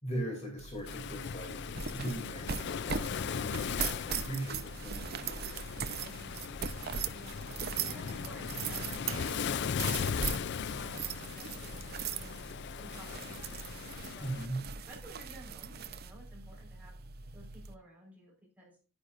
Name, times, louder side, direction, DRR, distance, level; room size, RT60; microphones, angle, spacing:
voice 1, 0.0-5.2 14.2-14.6, right 1 dB, 30° left, 1 dB, 2.8 m, -39 dB
sound 1, 0.6-17.7, right 6 dB, 50° right, 0.7 m, -40 dB
Waves surf, 0.9-14.5, left 7 dB, 55° left, 0.4 m, -38 dB
voice 2, 6.0-6.5 7.1-7.4 7.7-12.4 12.8-17.0 17.3-18.8, equal, 10° right, -2 dB, 4.5 m, -54 dB
Slam, 9.1-12.5 12.8-12.9, right 4 dB, 70° right, 1.1 m, -51 dB
10.5 x 9.8 x 2.5 m, 0.37 s
head